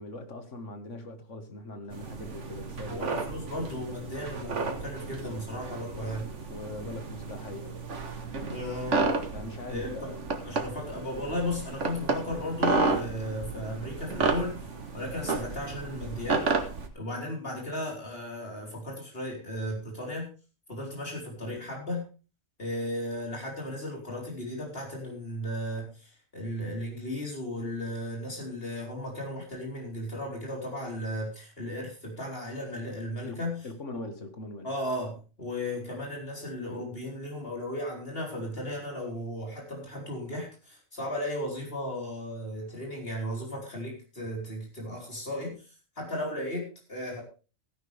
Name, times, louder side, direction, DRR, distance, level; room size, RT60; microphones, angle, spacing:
voice 1, 0.0-3.1 5.9-8.0 9.3-10.2 33.2-34.7, left 2 dB, 85° left, 2.1 m, -41 dB
sound 1, 1.9-16.9, right 4 dB, 75° right, 1.9 m, -32 dB
voice 2, 2.9-6.3 8.5-9.1 9.7-10.1 10.4-14.7 14.9-16.5 16.9-20.3 20.7-22.0 22.6-33.6 33.9-34.1 34.6-47.2, left 1 dB, 55° left, 4.7 m, -35 dB
15.5 x 10.5 x 3.5 m
omnidirectional pair, 1.2 m